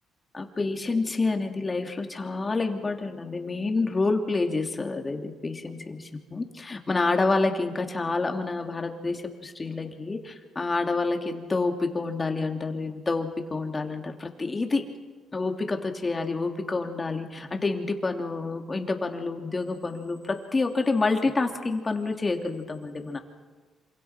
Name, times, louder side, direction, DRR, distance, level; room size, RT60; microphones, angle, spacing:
voice 1, 0.3-14.8 15.3-23.2, left 3 dB, 25° left, 4 dB, 3.0 m, -28 dB
27.0 x 25.5 x 6.1 m, 1.4 s
cardioid pair, 90°, 0 cm